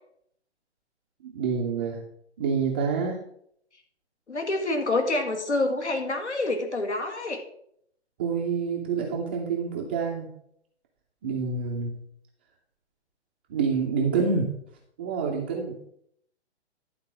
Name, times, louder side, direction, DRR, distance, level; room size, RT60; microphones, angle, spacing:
voice 1, 1.2-2.0 2.4-3.2 8.2-10.3 11.2-11.9 13.5-14.5 15.0-15.8, right 5 dB, 10° right, -1 dB, 0.4 m, -27 dB
voice 2, 4.3-7.4, left 2 dB, 80° left, 4 dB, 1.9 m, -27 dB
11.0 x 4.0 x 5.8 m, 0.70 s
figure-of-eight pair, 135°, 34 cm